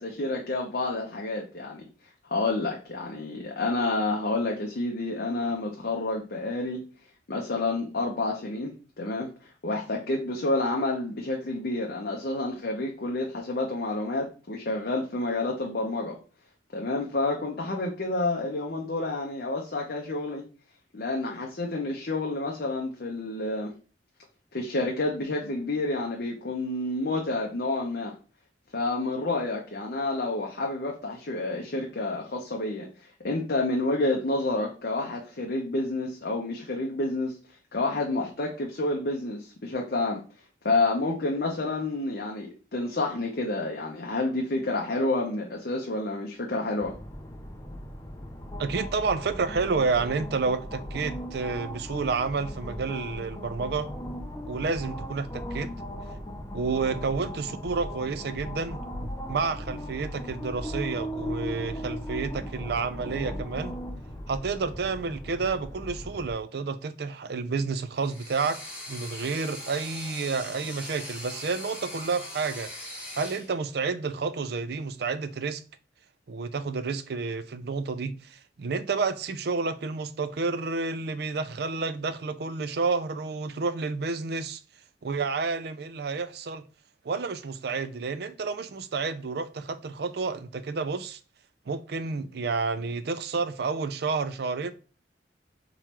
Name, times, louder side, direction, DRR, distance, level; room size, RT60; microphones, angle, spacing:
voice 1, 0.0-1.8 2.3-6.8 7.3-16.2 16.7-20.4 20.9-23.7 24.5-28.1 28.7-37.4 37.7-40.2 40.6-46.9, left 2 dB, 60° left, 0.8 m, -29 dB
sound 1, 46.8-66.3, equal, 20° left, 0.5 m, -37 dB
voice 2, 48.6-53.9 54.5-55.7 56.5-58.8 59.3-63.8 64.3-68.6 68.9-75.6 76.3-84.6 85.0-86.6 87.0-91.2 91.7-94.7, right 4 dB, 60° right, 0.4 m, -30 dB
sound 2, 68.0-73.5, left 1 dB, 5° right, 1.3 m, -40 dB
3.8 x 3.0 x 4.3 m
head